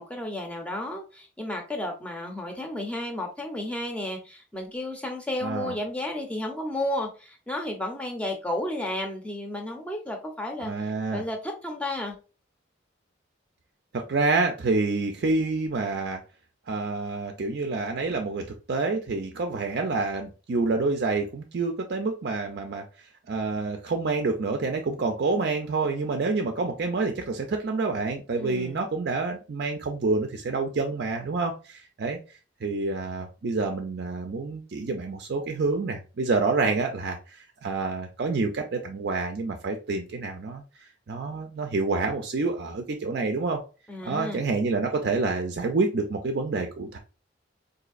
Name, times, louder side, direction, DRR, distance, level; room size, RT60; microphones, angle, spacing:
voice 1, 0.0-12.1 28.3-28.9 43.9-44.4, left 1 dB, 5° left, 2 dB, 0.7 m, -32 dB
voice 2, 5.4-5.7 10.6-11.2 13.9-16.2 16.7-22.8 23.3-32.2 32.6-40.6 41.1-43.6 44.1-47.0, right 3 dB, 55° right, 4 dB, 0.4 m, -28 dB
4.0 x 2.6 x 2.4 m, 0.33 s
head